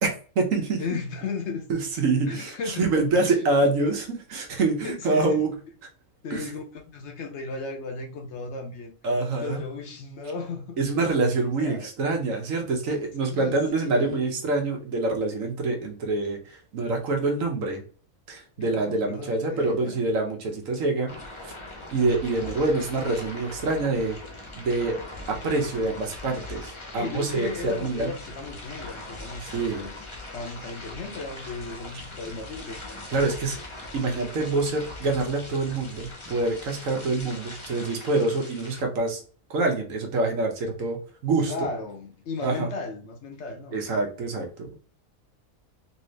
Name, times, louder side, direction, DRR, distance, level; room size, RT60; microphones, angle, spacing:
voice 1, 0.0-0.8 1.7-5.6 6.3-6.4 9.0-9.6 10.8-17.8 18.3-21.1 21.4-21.5 21.9-24.2 24.6-24.9 25.3-28.1 29.4-29.8 31.9-32.0 33.1-33.6 33.9-39.2 39.5-41.5 42.4-42.7 43.7-44.8, right 3 dB, 70° right, 1.2 m, -26 dB
voice 2, 0.8-1.7 2.3-2.9 4.8-5.4 6.2-8.9 9.4-10.8 11.6-11.9 13.2-14.4 18.6-20.0 27.0-30.0 30.3-32.8 41.5-43.8, left 4 dB, 65° left, 0.9 m, -35 dB
sound 1, 21.1-38.8, left 2 dB, 25° left, 0.7 m, -41 dB
3.2 x 2.8 x 3.2 m
omnidirectional pair, 1.4 m